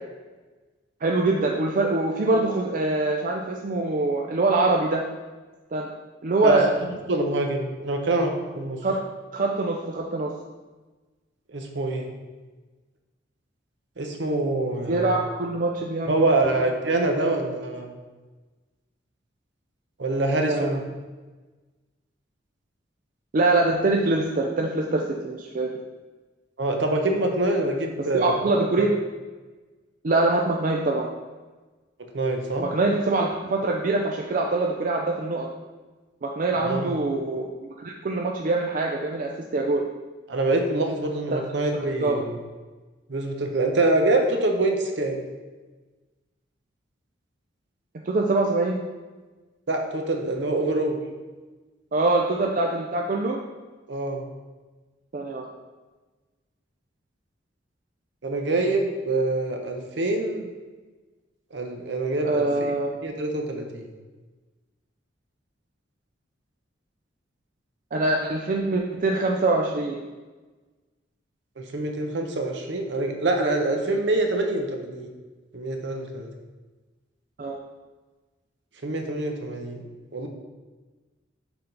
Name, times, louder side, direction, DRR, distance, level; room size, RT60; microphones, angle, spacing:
voice 1, 1.0-5.0 5.7-5.9 6.2-6.7 8.8-9.0 9.3-10.3 14.9-16.6 20.5-20.8 23.3-25.7 28.1-29.0 30.0-31.1 32.6-35.5 36.2-39.8 41.3-41.4 41.7-42.3 48.1-48.8 51.9-53.4 55.1-55.5 62.2-62.9 67.9-70.0 77.4-77.6, right 2 dB, 45° right, 1 dB, 0.4 m, -24 dB
voice 2, 7.1-8.8 11.5-12.1 14.0-15.3 16.1-17.9 20.0-20.8 26.6-28.9 32.1-32.7 36.6-37.0 40.3-42.4 43.1-45.2 49.7-51.0 53.9-54.2 58.2-60.5 61.5-62.7 63.0-63.8 71.6-75.1 75.5-76.3 78.8-79.8 80.1-80.3, right 2 dB, 65° right, 4 dB, 0.8 m, -25 dB
6.8 x 3.6 x 3.9 m, 1.3 s
head